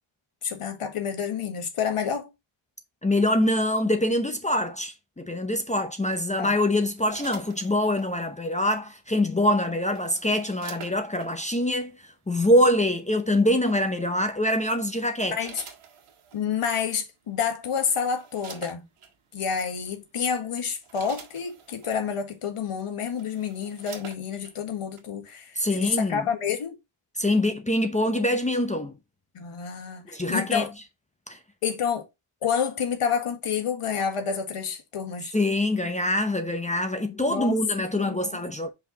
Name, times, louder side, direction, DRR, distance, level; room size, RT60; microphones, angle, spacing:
voice 1, 0.4-2.3 6.4-6.5 15.4-15.6 16.3-18.8 19.3-26.7 29.3-30.7 31.6-32.0 32.4-35.3 37.0-37.6 37.9-38.4, left 7 dB, 90° left, 1.9 m, -29 dB
voice 2, 3.0-15.4 25.6-26.2 27.2-29.0 30.1-30.7 31.3-31.4 35.3-38.7, left 1 dB, 15° left, 0.8 m, -24 dB
sound 1, 6.7-8.1 9.4-11.3 12.3-12.6 14.2-14.5 15.1-16.4 17.3-17.4 17.7-19.1 19.9-20.0 20.5-22.0 22.6-22.7 23.0-24.6 25.0-25.1, right 6 dB, 85° right, 1.8 m, -46 dB
5.8 x 5.0 x 3.9 m
wide cardioid pair, 170°, 50 cm